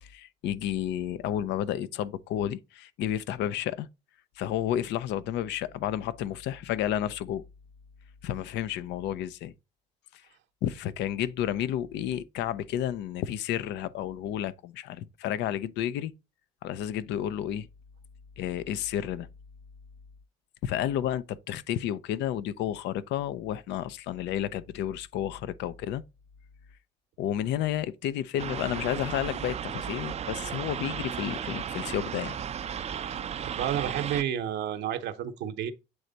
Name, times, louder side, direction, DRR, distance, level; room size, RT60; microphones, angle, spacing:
voice 1, 0.0-3.9 4.4-7.4 8.2-9.5 10.1-10.2 10.6-16.1 16.6-17.7 18.4-19.3 20.6-26.0 27.2-32.4, left 11 dB, 65° left, 0.6 m, -31 dB
sound 1, 28.4-34.2, right 8 dB, 35° right, 0.5 m, -35 dB
voice 2, 33.4-35.7, right 10 dB, 65° right, 0.8 m, -31 dB
7.9 x 3.3 x 4.0 m
supercardioid pair, 70°, 19 cm